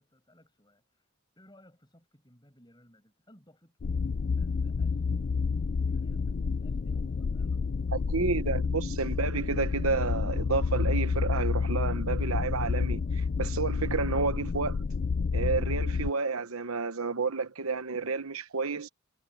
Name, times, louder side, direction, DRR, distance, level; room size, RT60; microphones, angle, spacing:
voice 1, 0.0-4.1 4.4-8.3, equal, 20° left, 7.0 m, -60 dB
sound 1, 3.8-16.1, left 5 dB, 50° left, 0.4 m, -29 dB
voice 2, 7.9-14.8 15.3-18.9, right 4 dB, 90° right, 1.1 m, -30 dB
head